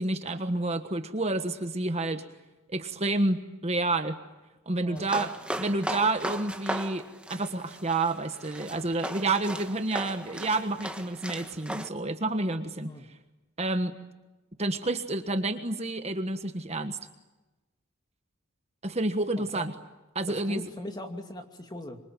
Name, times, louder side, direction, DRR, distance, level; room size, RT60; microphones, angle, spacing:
voice 1, 0.0-2.2 2.7-4.2 4.7-5.3 5.6-12.9 13.6-14.0 14.6-17.0 18.8-19.7 20.1-20.7, right 2 dB, 30° right, 7 dB, 1.4 m, -29 dB
voice 2, 4.8-5.3 12.8-13.0 19.5-19.7 20.3-22.0, left 1 dB, 20° left, 5 dB, 2.5 m, -40 dB
sound 1, 5.0-11.9, right 1 dB, 5° right, 1.3 m, -37 dB
26.0 x 24.0 x 9.2 m, 1.1 s
head